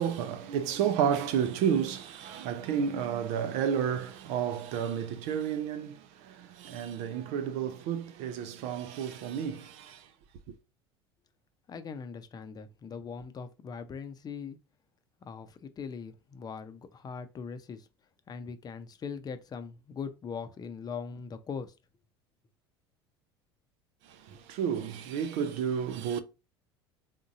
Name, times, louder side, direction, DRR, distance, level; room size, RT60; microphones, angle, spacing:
voice 1, 0.0-10.1 24.1-26.2, right 8 dB, 55° right, 0.6 m, -31 dB
voice 2, 11.7-14.6 15.2-17.9 18.3-21.7, left 6 dB, 30° left, 0.7 m, -40 dB
3.9 x 3.7 x 2.5 m
figure-of-eight pair, 70°, 14 cm